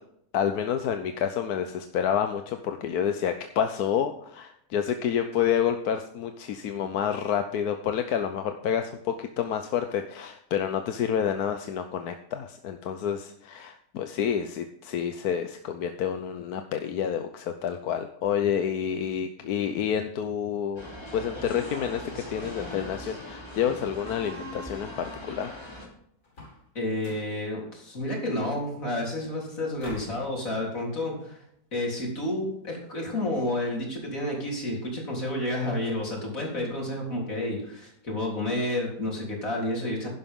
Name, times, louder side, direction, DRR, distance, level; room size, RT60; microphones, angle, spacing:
voice 1, 0.3-20.9 21.1-25.6, left 8 dB, 70° left, 7 dB, 1.3 m, -29 dB
sound 1, 20.8-25.9, left 1 dB, 15° left, 3.2 m, -40 dB
sound 2, 26.2-26.7 27.0-27.4 29.8-30.2, left 2 dB, 90° left, 5.3 m, -44 dB
voice 2, 26.7-31.4 31.7-40.1, left 1 dB, 55° left, -2 dB, 4.1 m, -30 dB
11.0 x 11.0 x 3.7 m, 0.73 s
omnidirectional pair, 1.7 m